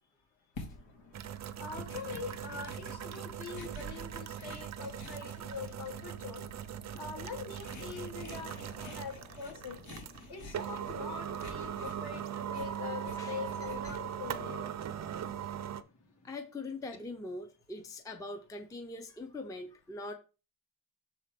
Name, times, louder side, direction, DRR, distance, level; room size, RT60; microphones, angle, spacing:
sound 1, 0.5-14.3, left 2 dB, 85° left, 2.3 m, -51 dB
sound 2, 1.1-15.8, right 9 dB, 40° right, 0.5 m, -40 dB
voice 1, 1.6-6.5 6.9-9.8 10.3-14.7, left 5 dB, 60° left, 2.2 m, -43 dB
sound 3, 7.7-16.4, left 1 dB, 40° left, 2.7 m, -61 dB
voice 2, 16.2-20.1, left 2 dB, 10° left, 0.5 m, -42 dB
6.6 x 4.3 x 5.1 m
wide cardioid pair, 180°, 45 cm